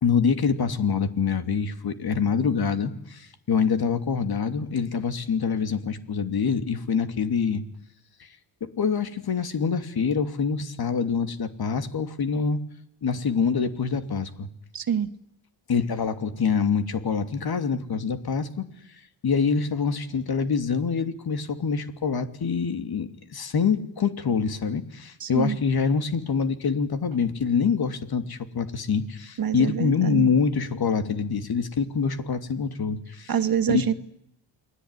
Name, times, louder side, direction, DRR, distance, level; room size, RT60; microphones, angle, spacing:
voice 1, 0.0-7.6 8.8-12.6 13.0-14.5 15.7-18.7 19.2-33.3 33.7-33.9, left 6 dB, 50° left, 9 dB, 2.9 m, -25 dB
voice 2, 14.7-15.1 25.2-25.6 29.4-30.3 33.3-33.9, right 8 dB, 45° right, 10 dB, 2.0 m, -25 dB
29.0 x 21.0 x 10.0 m, 0.77 s
cardioid pair, 95°, 48 cm